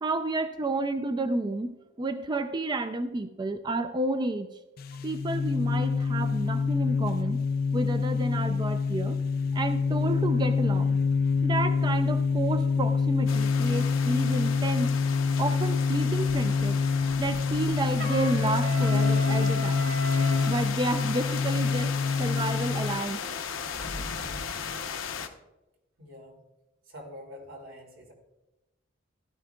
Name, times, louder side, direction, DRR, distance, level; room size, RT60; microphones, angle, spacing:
voice 1, 0.0-4.6 5.0-7.4 7.7-9.2 9.5-11.0 11.4-15.0 15.4-16.8 17.2-19.8 20.5-21.9 22.2-23.4, right 2 dB, 20° right, 8 dB, 0.4 m, -30 dB
sound 1, 4.8-23.0, left 5 dB, 50° left, 0.4 m, -26 dB
sound 2, 13.3-25.3, left 6 dB, 80° left, 0.8 m, -36 dB
Trumpet, 18.0-20.5, right 3 dB, 55° right, 2.2 m, -36 dB
voice 2, 26.0-26.5 26.8-28.1, equal, 90° right, 1 dB, 2.6 m, -46 dB
15.5 x 11.5 x 2.3 m, 0.99 s
head